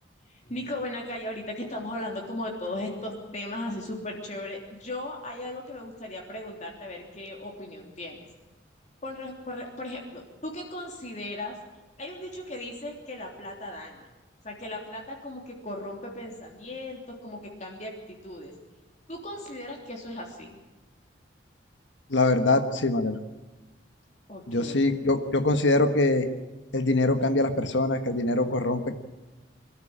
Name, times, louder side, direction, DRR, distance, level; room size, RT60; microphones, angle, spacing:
voice 1, 0.2-8.2 9.0-11.6 12.0-14.1 14.4-17.9 18.2-18.5 19.1-20.6 24.3-24.8, left 1 dB, 35° left, 0 dB, 3.2 m, -37 dB
voice 2, 22.1-23.2 24.5-26.3 26.7-28.9, left 2 dB, 75° left, 8 dB, 1.5 m, -23 dB
24.0 x 13.0 x 8.7 m, 1.2 s
head